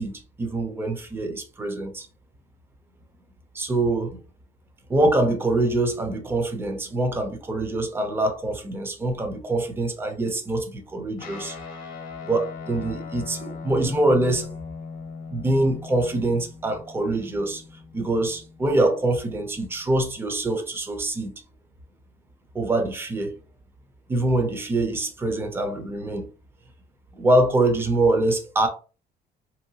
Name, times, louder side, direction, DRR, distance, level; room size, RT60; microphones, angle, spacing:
voice 1, 0.0-2.1 3.5-4.2 4.9-11.6 12.3-14.5 15.3-17.6 17.9-21.3 22.5-23.3 24.1-26.3 27.1-28.7, right 2 dB, 15° right, 0.4 m, -24 dB
Guitar, 11.2-19.9, left 5 dB, 60° left, 0.7 m, -40 dB
2.7 x 2.2 x 2.7 m
cardioid pair, 165°, 16 cm